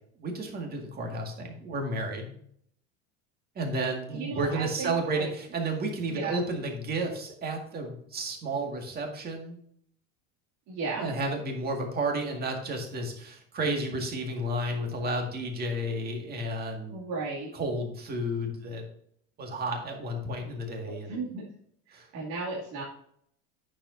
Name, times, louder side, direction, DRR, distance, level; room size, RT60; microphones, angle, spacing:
voice 1, 0.2-2.3 3.6-9.6 11.0-17.0 17.5-18.8 19.4-21.1 21.9-22.1, right 1 dB, 30° right, 2 dB, 2.0 m, -32 dB
voice 2, 4.1-5.3 6.1-6.4 10.7-11.1 16.9-17.5 20.8-21.4 21.9-22.8, right 3 dB, 55° right, -5 dB, 2.5 m, -35 dB
9.6 x 7.2 x 2.7 m, 0.66 s
cardioid pair, 145°, 34 cm